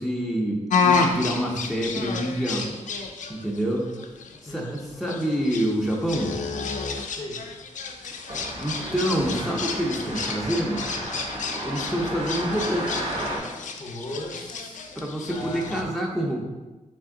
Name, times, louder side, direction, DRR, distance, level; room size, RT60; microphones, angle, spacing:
voice 1, 0.0-2.7 3.3-3.9 4.4-6.3 8.6-10.9 11.6-13.1 15.0-16.4, equal, ahead, -3 dB, 0.6 m, -27 dB
sound 1, 0.7-15.8, left 5 dB, 75° left, 0.4 m, -30 dB
voice 2, 4.5-4.8 7.1-7.5 13.8-14.9 15.2-15.9, equal, 35° left, 0 dB, 0.7 m, -37 dB
sound 2, 8.3-13.4, right 1 dB, 45° right, 1.2 m, -33 dB
3.7 x 3.4 x 3.6 m, 1.2 s
wide cardioid pair, 105°, 13 cm